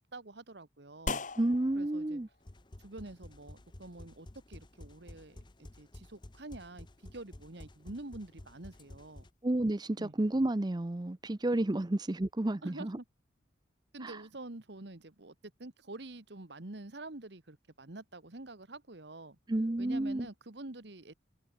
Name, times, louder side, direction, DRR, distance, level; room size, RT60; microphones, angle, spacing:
voice 1, 0.0-1.2 1.7-2.2 2.8-9.3 10.0-10.1 12.6-13.0 13.9-19.4 19.8-21.1, right 2 dB, 60° right, 1.5 m, -47 dB
sound 1, 1.1-9.8, left 3 dB, 40° left, 1.8 m, -46 dB
voice 2, 1.4-2.3 9.4-13.0 14.0-14.2 19.5-20.3, right 1 dB, 20° right, 0.6 m, -31 dB
sound 2, 2.4-9.3, left 1 dB, 25° left, 0.8 m, -52 dB
head